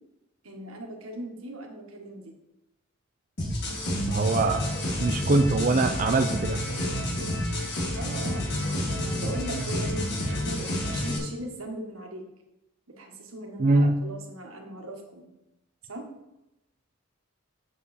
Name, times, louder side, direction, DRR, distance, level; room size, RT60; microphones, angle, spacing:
voice 1, 0.4-2.3 8.0-12.2 12.9-15.3 15.9-16.0, right 1 dB, 85° right, 2 dB, 1.5 m, -39 dB
sound 1, 3.4-11.2, left 1 dB, 50° left, 1.9 m, -29 dB
voice 2, 4.1-4.6 5.0-6.6 13.6-14.0, right 3 dB, 35° right, 5 dB, 0.4 m, -23 dB
7.1 x 7.0 x 4.2 m, 0.91 s
head